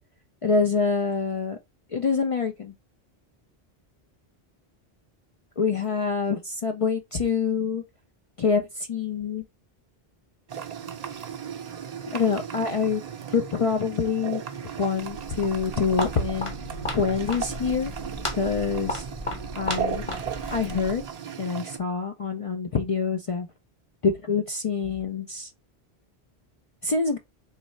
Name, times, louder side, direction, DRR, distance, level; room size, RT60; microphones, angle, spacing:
voice 1, 0.4-1.6 1.9-2.7 5.6-7.8 8.4-9.4 12.1-13.0 13.3-14.4 14.8-16.5 16.9-17.9 18.4-19.1 19.6-20.0 20.5-21.0 21.4-23.5 24.0-25.5 26.8-27.2, left 5 dB, 50° left, 0.4 m, -26 dB
sound 1, 10.5-21.8, right 8 dB, 50° right, 0.6 m, -36 dB
Walk footsteps, 15.0-21.1, left 1 dB, 30° left, 1.0 m, -34 dB
3.8 x 3.1 x 3.1 m
omnidirectional pair, 1.1 m